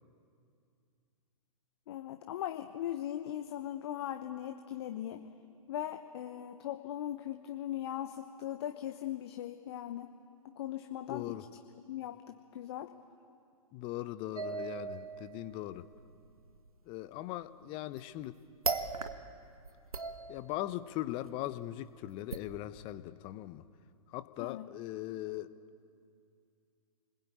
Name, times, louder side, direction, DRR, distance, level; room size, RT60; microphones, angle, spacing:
voice 1, 1.9-5.2 5.7-10.1 10.4-11.4 11.9-12.9 24.4-24.7, left 11 dB, 45° left, 7 dB, 1.1 m, -39 dB
voice 2, 11.1-11.4 13.7-15.9 16.9-18.4 20.3-23.7 24.1-25.5, left 15 dB, 30° left, 14 dB, 0.9 m, -40 dB
sound 1, 14.4-16.7 17.9-18.3 18.6-19.4 19.6-20.8 21.2-21.3 22.3-22.4, right 4 dB, 75° right, 1.4 m, -38 dB
28.0 x 20.5 x 8.7 m, 2.4 s
figure-of-eight pair, 115°, 19 cm